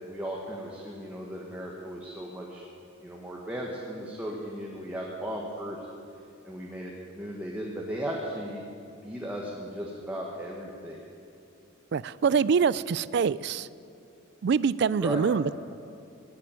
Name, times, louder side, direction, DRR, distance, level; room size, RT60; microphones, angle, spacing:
voice 1, 0.0-2.6 3.0-5.9 6.4-8.6 9.0-11.0 15.0-15.2, equal, 10° right, -3 dB, 1.3 m, -36 dB
voice 2, 11.9-13.7 14.4-15.5, right 6 dB, 55° right, 19 dB, 0.3 m, -25 dB
18.5 x 7.7 x 8.9 m, 2.6 s
head